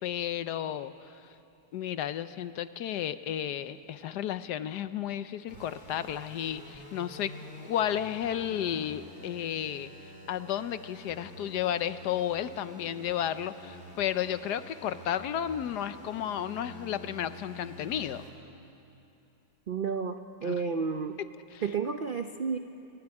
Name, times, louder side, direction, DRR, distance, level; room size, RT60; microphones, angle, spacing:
voice 1, 0.0-1.2 1.7-7.3 7.6-9.9 10.3-18.2 20.4-20.6 21.5-21.6, left 10 dB, 75° left, 13 dB, 1.2 m, -33 dB
sound 1, 5.5-18.3, equal, 25° left, 3.8 m, -48 dB
voice 2, 19.7-21.2 21.6-22.6, right 5 dB, 80° right, 7 dB, 0.4 m, -31 dB
28.0 x 13.0 x 9.8 m, 2.7 s
omnidirectional pair, 1.9 m